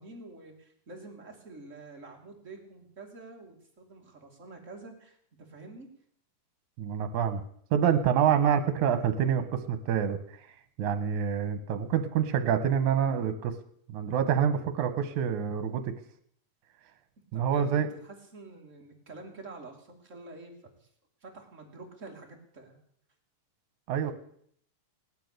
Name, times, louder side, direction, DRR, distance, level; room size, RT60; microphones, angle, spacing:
voice 1, 0.0-5.9 17.3-20.5 20.8-20.9 21.2-22.8 24.0-24.1, right 3 dB, 25° right, 1 dB, 2.9 m, -48 dB
voice 2, 6.8-7.4 7.7-10.2 10.8-13.5 13.9-15.9 17.3-17.9 23.9-24.1, right 8 dB, 70° right, 11 dB, 2.7 m, -26 dB
18.0 x 11.5 x 6.8 m, 0.66 s
omnidirectional pair, 3.6 m